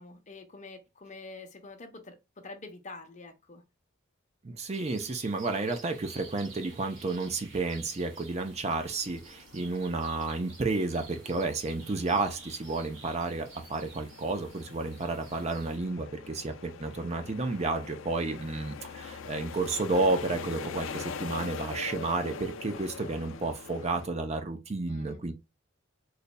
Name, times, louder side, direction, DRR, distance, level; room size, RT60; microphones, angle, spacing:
voice 1, 0.0-3.6 24.9-25.2, left 3 dB, 35° left, 0.8 m, -46 dB
voice 2, 4.4-25.3, right 3 dB, 30° right, 0.5 m, -31 dB
sound 1, 4.7-15.8, right 4 dB, 60° right, 1.2 m, -51 dB
sound 2, 8.3-24.1, left 5 dB, 70° left, 0.4 m, -44 dB
4.0 x 3.1 x 2.2 m
head